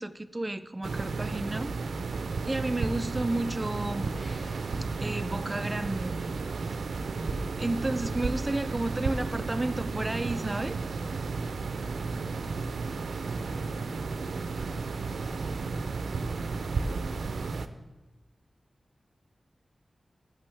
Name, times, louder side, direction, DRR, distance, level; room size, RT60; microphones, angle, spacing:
voice 1, 0.0-1.7 2.4-4.1 4.8-6.2 7.6-10.8, right 2 dB, 20° right, 12 dB, 0.4 m, -32 dB
sound 1, 0.8-17.7, right 4 dB, 85° right, 0.4 m, -33 dB
sound 2, 4.0-5.0 5.8-7.5, left 1 dB, 30° left, 1.9 m, -56 dB
voice 2, 7.7-8.9 13.4-16.6 16.9-17.8, left 1 dB, 75° left, 1 dB, 1.5 m, -54 dB
14.5 x 6.1 x 3.3 m, 1.1 s
wide cardioid pair, 120°, 0 cm